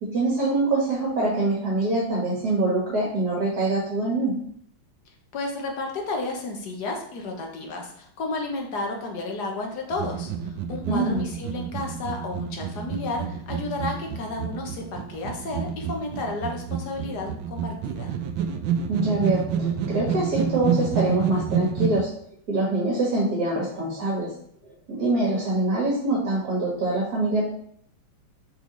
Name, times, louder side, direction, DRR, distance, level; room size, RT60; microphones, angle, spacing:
voice 1, 0.0-4.3 10.9-11.2 18.9-22.1 22.5-24.3 24.9-27.4, right 2 dB, 50° right, -4 dB, 2.1 m, -24 dB
voice 2, 5.3-18.1, left 2 dB, 55° left, 1 dB, 1.7 m, -32 dB
sound 1, 9.9-22.1, right 7 dB, 75° right, 1.3 m, -29 dB
6.1 x 4.8 x 4.0 m, 0.66 s
omnidirectional pair, 2.3 m